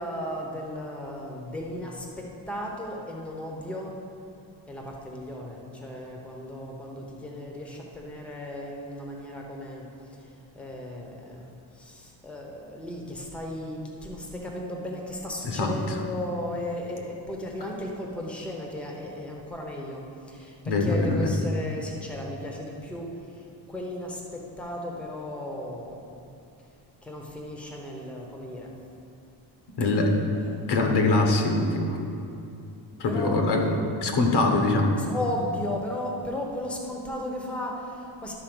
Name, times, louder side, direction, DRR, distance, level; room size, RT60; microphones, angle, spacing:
voice 1, 0.0-4.0 4.7-10.2 10.5-26.1 27.0-28.7 30.0-30.1 30.4-30.6 33.0-33.9 35.0-38.3, left 1 dB, 5° left, 0 dB, 0.8 m, -35 dB
voice 2, 15.4-15.8 20.6-21.3 29.8-30.2 30.7-32.1 33.0-34.9, left 2 dB, 75° left, 2 dB, 1.2 m, -23 dB
12.0 x 4.3 x 6.1 m, 2.6 s
wide cardioid pair, 175°, 41 cm